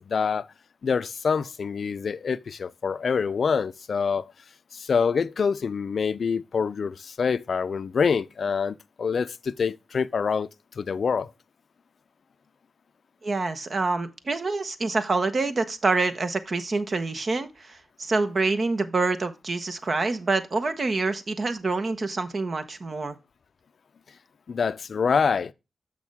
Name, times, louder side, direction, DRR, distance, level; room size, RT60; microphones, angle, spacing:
voice 1, 0.1-0.5 0.8-4.2 4.7-10.5 10.8-11.3 24.5-25.5, left 6 dB, 70° left, 0.4 m, -26 dB
voice 2, 13.2-23.2, right 3 dB, 55° right, 1.0 m, -26 dB
6.6 x 6.2 x 3.5 m
supercardioid pair, 45°, 0 cm